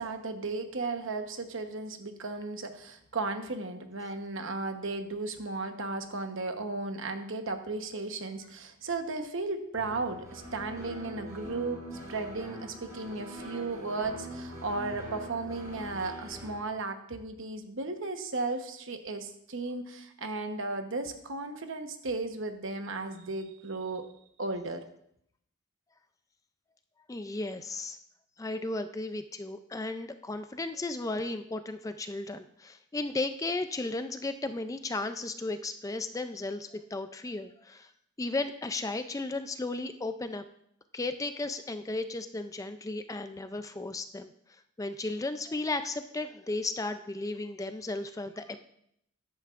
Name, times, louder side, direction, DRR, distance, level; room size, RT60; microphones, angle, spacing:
voice 1, 0.0-11.8 12.1-24.0 24.4-24.8, right 3 dB, 60° right, 6 dB, 1.0 m, -35 dB
sound 1, 9.7-16.5, equal, 15° right, 4.6 m, -43 dB
voice 2, 27.1-28.0 28.4-37.9 38.2-40.4 40.9-44.3 44.8-48.6, left 2 dB, 15° left, 9 dB, 0.3 m, -35 dB
14.0 x 11.0 x 2.5 m, 0.72 s
head